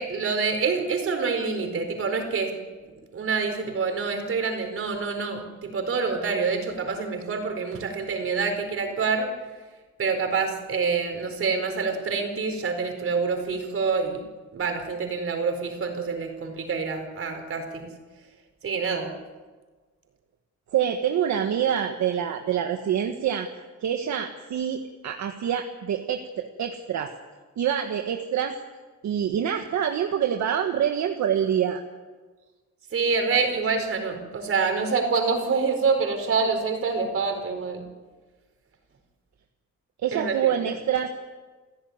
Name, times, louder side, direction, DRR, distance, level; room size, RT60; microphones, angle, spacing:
voice 1, 0.0-2.5 3.1-9.3 10.0-14.2 14.5-17.9 18.6-19.1 32.9-37.8 40.1-40.5, right 4 dB, 45° right, 5 dB, 4.7 m, -26 dB
voice 2, 20.7-23.5 23.8-27.1 27.6-28.6 29.0-31.8 40.0-41.2, right 9 dB, 70° right, 5 dB, 1.6 m, -26 dB
29.0 x 15.5 x 9.6 m, 1.3 s
cardioid pair, 155°, 30 cm